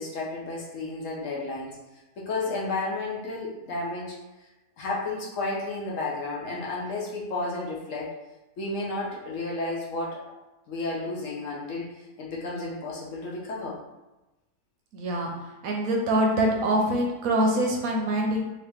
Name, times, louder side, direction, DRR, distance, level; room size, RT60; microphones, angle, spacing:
voice 1, 0.0-1.8 2.2-4.2 4.8-8.1 8.6-10.2 10.7-11.9 12.2-13.8, left 2 dB, 65° left, -4 dB, 1.0 m, -32 dB
voice 2, 14.9-15.3 15.6-18.4, right 1 dB, 70° right, 0 dB, 0.9 m, -24 dB
2.9 x 2.8 x 3.3 m, 1.0 s
omnidirectional pair, 1.7 m